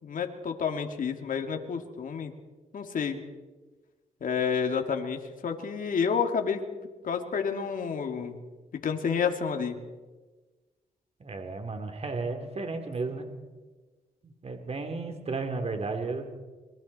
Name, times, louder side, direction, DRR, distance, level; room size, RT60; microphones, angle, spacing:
voice 1, 0.0-2.3 2.7-3.2 4.2-6.6 7.0-8.4 8.7-9.8, left 6 dB, 65° left, 4 dB, 2.6 m, -29 dB
voice 2, 11.2-13.3 14.2-16.3, right 3 dB, 45° right, 5 dB, 3.7 m, -33 dB
26.0 x 22.5 x 4.5 m, 1.3 s
cardioid pair, 65°, 15 cm